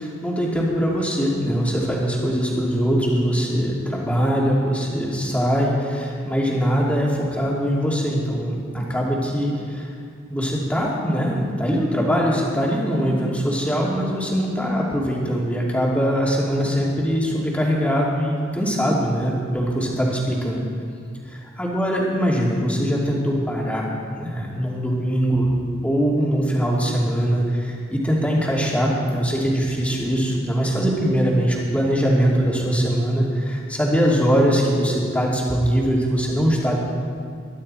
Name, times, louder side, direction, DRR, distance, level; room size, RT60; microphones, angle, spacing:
voice 1, 0.0-9.9 10.3-20.7 21.6-25.5 25.8-36.8, equal, 5° left, -4 dB, 2.6 m, -22 dB
21.5 x 12.0 x 4.4 m, 2.3 s
head